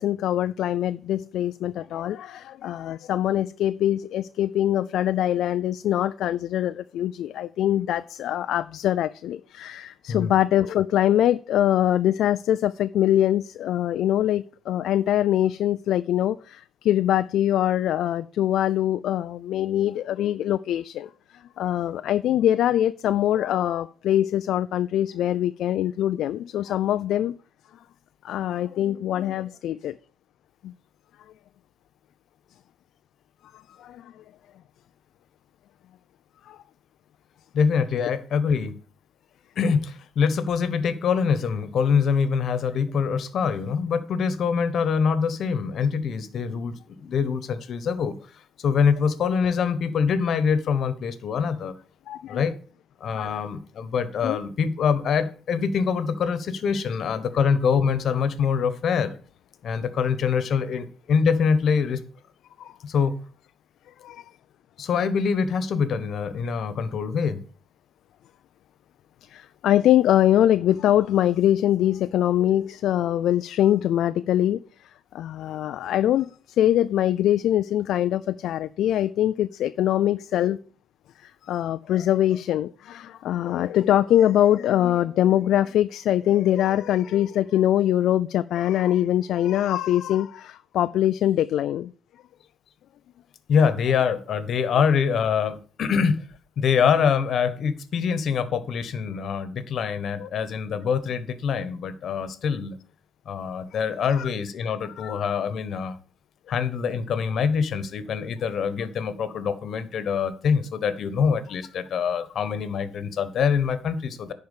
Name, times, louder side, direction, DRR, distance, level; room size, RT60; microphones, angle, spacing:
voice 1, 0.0-27.4 28.2-30.0 30.6-30.7 33.7-34.2 36.5-36.6 52.1-52.5 53.2-53.4 54.2-54.4 62.6-62.7 64.0-64.2 69.3-74.6 75.1-80.6 81.2-91.9 100.2-100.3 104.2-104.3 105.0-105.3, left 12 dB, 80° left, 0.3 m, -23 dB
voice 2, 37.5-38.7 39.6-48.1 48.6-51.7 52.3-52.5 53.0-59.2 59.6-62.0 62.8-63.2 64.8-67.4 93.5-96.3 96.6-102.7 103.3-106.0 106.5-114.3, left 6 dB, 65° left, 1.2 m, -24 dB
10.5 x 4.5 x 6.7 m
cardioid pair, 90°, 0 cm